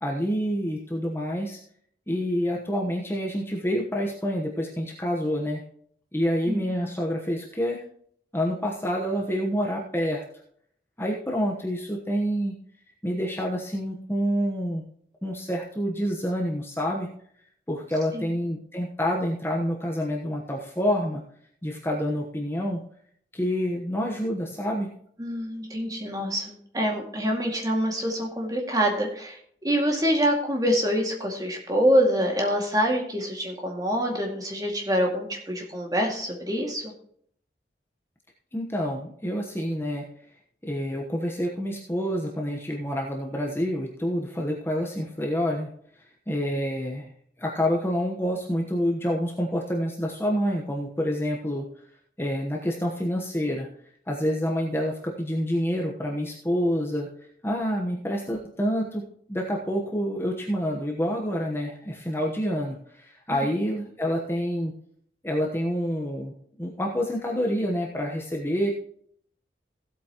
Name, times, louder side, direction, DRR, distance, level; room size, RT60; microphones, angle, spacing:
voice 1, 0.0-1.6 2.1-5.6 6.1-7.8 8.3-10.2 11.0-12.6 13.0-14.8 15.2-17.1 17.7-21.2 21.6-22.8 23.3-24.9 38.5-40.0 40.6-45.7 46.3-47.1 47.4-51.7 52.2-53.7 54.1-57.1 57.4-64.7 65.2-68.7, equal, 15° left, -1 dB, 1.0 m, -27 dB
voice 2, 6.5-6.9 18.1-18.3 25.2-36.9 63.3-63.5, equal, 20° right, 1 dB, 2.1 m, -26 dB
16.0 x 8.2 x 3.0 m, 0.65 s
head